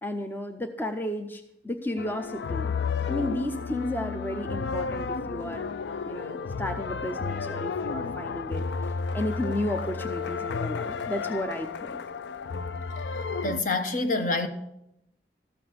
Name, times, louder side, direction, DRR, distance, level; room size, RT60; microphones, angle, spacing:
voice 1, 0.0-2.7 3.1-5.7 6.1-8.6 9.1-12.0, left 1 dB, 10° left, 0.6 m, -33 dB
sound 1, 2.0-13.6, left 5 dB, 75° left, 0.4 m, -32 dB
voice 2, 13.4-14.5, left 3 dB, 45° left, 0.9 m, -26 dB
13.5 x 6.0 x 6.6 m
head